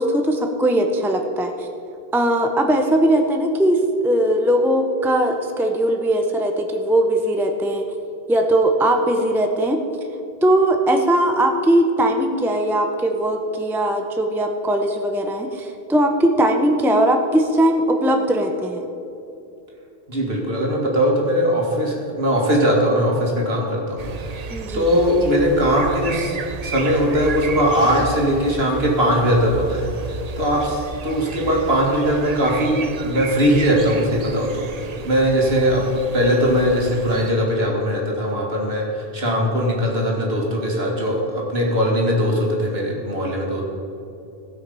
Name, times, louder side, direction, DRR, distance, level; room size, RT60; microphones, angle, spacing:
voice 1, 0.0-1.7 2.1-7.8 8.3-9.8 10.4-18.8 24.5-25.0, right 1 dB, 5° right, 4 dB, 0.6 m, -19 dB
voice 2, 20.1-26.4 26.6-35.8 36.1-43.6, equal, 80° right, -2 dB, 2.4 m, -20 dB
danish garden, 24.0-37.3, right 4 dB, 45° right, 0.6 m, -33 dB
16.5 x 5.8 x 5.5 m, 2.9 s
omnidirectional pair, 1.0 m